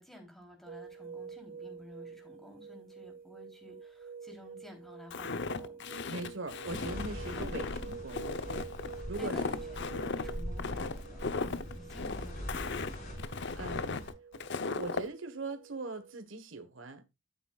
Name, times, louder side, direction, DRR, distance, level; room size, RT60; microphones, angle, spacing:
voice 1, 0.0-5.7 9.2-12.9, left 1 dB, ahead, 3.5 m, -51 dB
sound 1, 0.7-16.2, right 5 dB, 45° right, 0.5 m, -48 dB
Walk footsteps, 5.1-15.1, left 4 dB, 65° left, 0.8 m, -37 dB
voice 2, 6.1-8.3 9.1-9.5 13.3-14.0 14.8-17.0, right 3 dB, 90° right, 1.4 m, -41 dB
sound 2, 6.7-14.1, equal, 40° left, 5.1 m, -43 dB
11.5 x 9.0 x 2.4 m
head